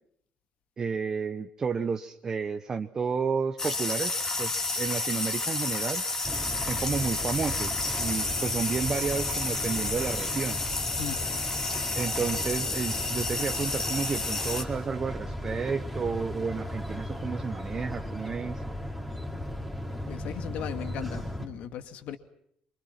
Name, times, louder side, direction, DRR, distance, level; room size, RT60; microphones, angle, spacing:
voice 1, 0.8-6.0 6.6-10.6 12.0-18.6, right 5 dB, 25° right, 0.9 m, -31 dB
sound 1, 3.6-14.6, left 3 dB, 20° left, 2.7 m, -31 dB
sound 2, 6.2-21.5, equal, 5° left, 3.4 m, -36 dB
voice 2, 20.0-22.2, left 10 dB, 70° left, 2.3 m, -37 dB
27.5 x 25.0 x 5.8 m
cardioid pair, 170°, 2 cm